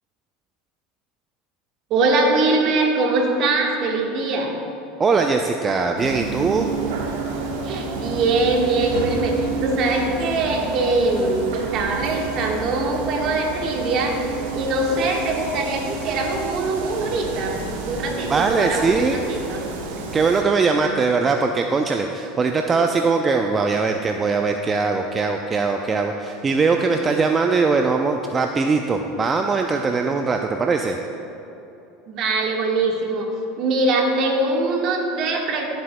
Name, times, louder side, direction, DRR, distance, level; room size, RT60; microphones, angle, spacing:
voice 1, 1.9-4.5 7.6-14.2 14.5-19.6 20.0-20.1 20.8-21.0 32.1-33.3 33.6-35.7, right 2 dB, 55° right, 1 dB, 1.4 m, -22 dB
voice 2, 5.0-6.7 18.3-19.2 20.1-31.0, right 4 dB, 25° right, 4 dB, 0.4 m, -21 dB
sound 1, 6.0-20.4, right 4 dB, 75° right, 1.2 m, -30 dB
13.0 x 7.7 x 2.2 m, 2.9 s
hypercardioid pair, 95°, 0 cm